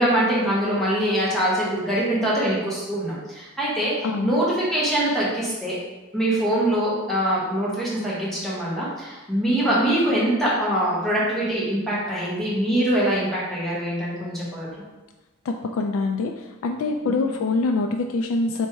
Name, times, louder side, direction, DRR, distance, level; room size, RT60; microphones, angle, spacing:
voice 1, 0.0-4.4 4.7-5.8 6.1-14.7 17.0-17.2, right 1 dB, ahead, -8 dB, 1.2 m, -23 dB
voice 2, 15.7-16.3 16.6-18.7, left 3 dB, 65° left, 3 dB, 0.3 m, -24 dB
3.3 x 3.2 x 4.4 m, 1.1 s
head